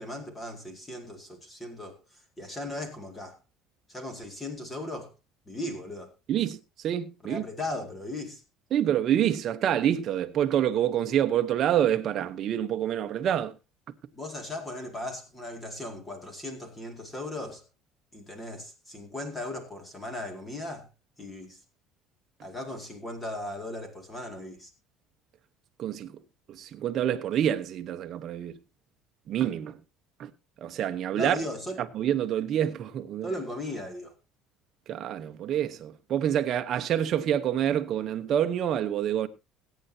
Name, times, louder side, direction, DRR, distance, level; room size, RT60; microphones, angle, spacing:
voice 1, 0.0-2.0 2.4-3.4 3.9-5.1 5.5-6.1 7.2-8.4 14.1-17.6 18.1-20.9 21.2-21.6 22.4-24.7 31.1-31.8 33.2-34.1, left 1 dB, 10° left, 2.2 m, -37 dB
voice 2, 6.3-7.4 8.7-13.5 25.8-26.2 26.5-28.6 29.3-29.8 30.2-30.3 30.6-31.4 31.9-33.3 34.9-39.3, right 10 dB, 35° right, 0.9 m, -27 dB
21.0 x 9.1 x 2.7 m
cardioid pair, 175°, 0 cm